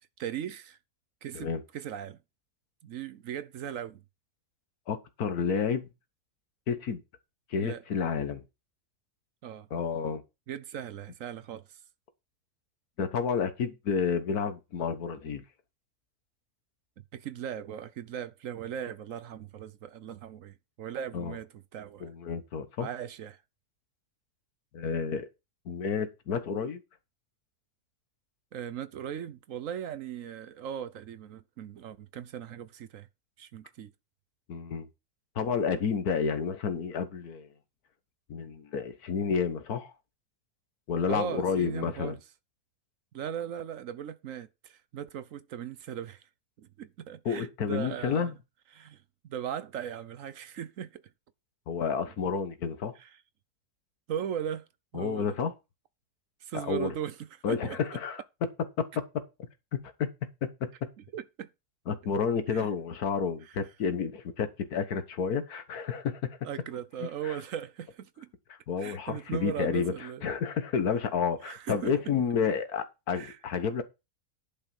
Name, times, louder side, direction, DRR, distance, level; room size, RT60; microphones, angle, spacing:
voice 1, 0.2-0.8 1.2-2.2 2.8-4.0 7.6-7.8 9.4-9.7 10.5-11.8 17.1-22.1 22.8-23.4 28.5-33.1 33.4-33.9 41.1-42.2 43.1-46.3 46.6-48.4 48.7-51.0 52.1-52.2 52.9-53.2 54.1-54.6 54.9-55.4 56.4-57.8 61.0-61.5 62.5-62.7 63.4-63.6 66.4-68.3 68.8-70.2 71.4-71.9 73.1-73.4, right 9 dB, 65° right, 1.1 m, -38 dB
voice 2, 4.9-5.9 6.7-7.0 7.5-8.4 9.7-10.2 13.0-15.4 21.1-21.3 22.0-22.9 24.7-25.3 25.7-26.8 34.5-34.9 35.3-37.5 38.3-39.9 40.9-42.2 47.2-48.3 51.7-52.9 54.9-55.5 56.5-56.9 57.4-58.2 60.0-60.1 60.4-60.7 61.9-66.2 67.2-67.4 68.7-69.9 70.2-73.8, left 6 dB, 80° left, 1.7 m, -30 dB
11.0 x 5.7 x 5.3 m
omnidirectional pair, 1.6 m